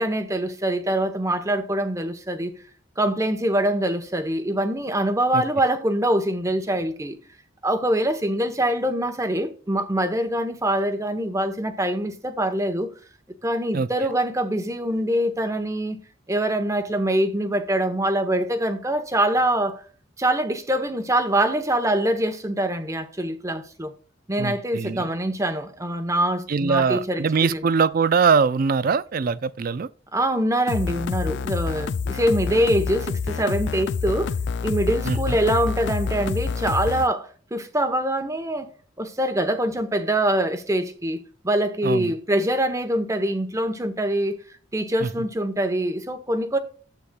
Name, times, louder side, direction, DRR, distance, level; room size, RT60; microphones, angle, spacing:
voice 1, 0.0-2.5 3.0-7.2 7.6-12.9 13.4-16.0 16.3-19.8 20.2-23.9 24.3-27.2 27.5-27.6 30.1-34.3 34.6-38.7 39.0-44.4 44.7-46.6, right 1 dB, 15° right, 0.9 m, -24 dB
voice 2, 24.4-25.0 26.5-29.9 35.1-35.4 41.8-42.1 45.0-45.3, right 5 dB, 45° right, 0.4 m, -22 dB
sound 1, 30.7-37.1, left 5 dB, 60° left, 0.4 m, -27 dB
11.5 x 8.1 x 2.3 m
head